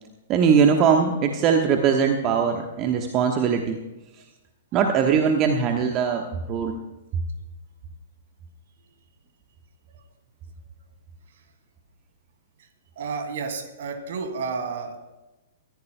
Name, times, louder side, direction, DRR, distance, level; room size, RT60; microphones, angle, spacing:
voice 1, 0.3-3.8 4.7-6.7, right 6 dB, 30° right, 4 dB, 1.2 m, -21 dB
voice 2, 13.0-15.0, right 4 dB, 55° right, 6 dB, 2.5 m, -31 dB
23.5 x 15.0 x 2.3 m, 1.0 s
figure-of-eight pair, 105°, 0 cm